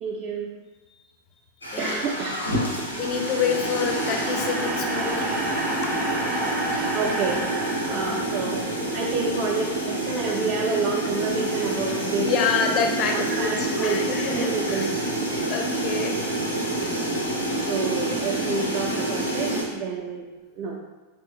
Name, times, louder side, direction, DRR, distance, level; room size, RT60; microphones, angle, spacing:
voice 1, 0.0-0.5 1.8-2.4 6.9-7.4 7.8-8.6 8.9-12.3 13.1-14.0 14.3-14.9 17.7-20.3 20.6-20.8, right 4 dB, 35° right, -1 dB, 0.3 m, -28 dB
sound 1, 1.6-19.6, right 1 dB, 85° left, 0.6 m, -28 dB
sound 2, 2.8-9.0, right 1 dB, 15° right, 0.7 m, -31 dB
voice 2, 3.0-5.3 5.8-5.9 7.8-8.2 12.2-15.0 15.5-16.4, left 6 dB, 35° left, 3 dB, 0.4 m, -28 dB
3.0 x 2.4 x 2.7 m, 1.2 s
figure-of-eight pair, 90°, 0 cm